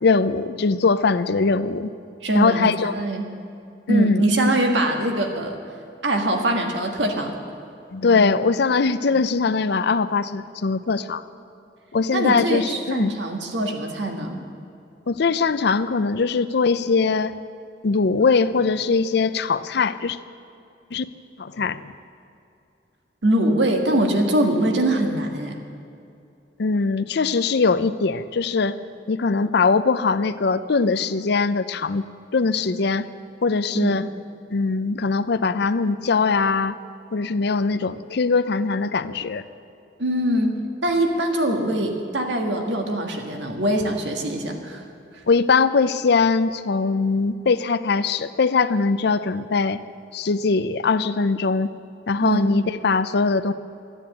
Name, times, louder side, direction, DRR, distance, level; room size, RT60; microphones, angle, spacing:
voice 1, 0.0-1.9 2.3-2.9 3.9-4.2 7.9-11.2 11.9-13.1 15.1-17.4 17.8-20.2 20.9-21.0 21.4-21.9 26.6-28.8 29.1-32.0 32.3-33.1 33.4-34.0 34.5-36.8 37.1-39.4 45.3-49.8 50.1-51.7 52.1-53.5, left 4 dB, 65° left, 13 dB, 0.6 m, -21 dB
voice 2, 2.2-3.3 3.9-5.6 6.0-7.3 12.1-14.4 23.2-25.6 33.7-34.0 40.0-44.8 52.2-52.4, right 1 dB, 80° right, 3 dB, 1.8 m, -23 dB
13.5 x 9.9 x 8.7 m, 2.6 s
head